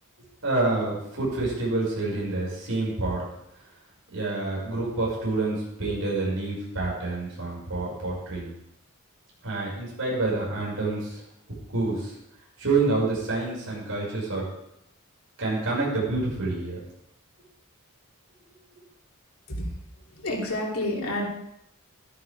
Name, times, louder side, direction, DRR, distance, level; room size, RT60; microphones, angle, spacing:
voice 1, 0.4-3.2 4.1-8.5 9.4-11.2 11.7-12.2 12.6-14.5 15.4-16.8, right 3 dB, 70° right, -5 dB, 5.9 m, -27 dB
voice 2, 19.5-21.3, left 1 dB, 75° left, -2 dB, 3.2 m, -30 dB
13.0 x 12.0 x 3.6 m, 0.78 s
head